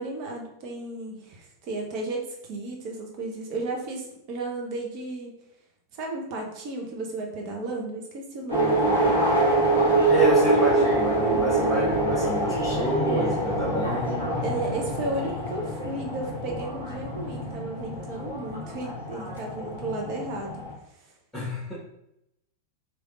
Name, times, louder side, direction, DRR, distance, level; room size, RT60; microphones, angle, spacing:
voice 1, 0.0-5.3 5.9-9.1 11.2-11.7 14.4-20.6, right 2 dB, 45° right, 1 dB, 0.8 m, -34 dB
sound 1, 8.5-20.7, right 2 dB, 85° right, 1.3 m, -25 dB
voice 2, 10.1-14.4 21.3-21.7, equal, 5° left, -9 dB, 1.3 m, -28 dB
3.3 x 2.9 x 2.5 m, 0.83 s
figure-of-eight pair, 90°, 0 cm